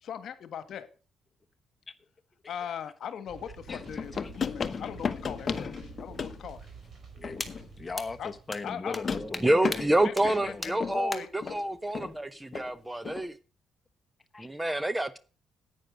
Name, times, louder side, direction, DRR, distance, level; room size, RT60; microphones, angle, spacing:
voice 1, 0.0-0.9 2.5-6.7 8.2-8.3 8.6-9.0 10.0-11.6, left 8 dB, 65° left, 12 dB, 1.4 m, -39 dB
sound 1, 3.3-8.7, right 6 dB, 50° right, 5.0 m, -49 dB
sound 2, 3.7-6.5 7.2-7.9 8.9-11.1 11.4-11.6 11.9-12.2 12.5-12.7 13.0-13.3, left 6 dB, 40° left, 1.1 m, -35 dB
voice 2, 3.7-4.3 7.1-7.4 7.8-9.9 10.4-10.6 14.3-14.9, left 4 dB, 25° left, 6 dB, 1.2 m, -39 dB
sound 3, 7.4-7.5 8.0-8.1 8.5-8.6 8.9-9.0 9.3-9.4 9.7-9.8 10.2-10.3 10.6-10.7 11.1-11.2, left 1 dB, 5° left, 1.6 m, -35 dB
voice 3, 9.2-13.4 14.4-15.2, right 1 dB, 10° right, 15 dB, 0.7 m, -28 dB
9.8 x 9.2 x 6.4 m, 0.38 s
cardioid pair, 90°, 0 cm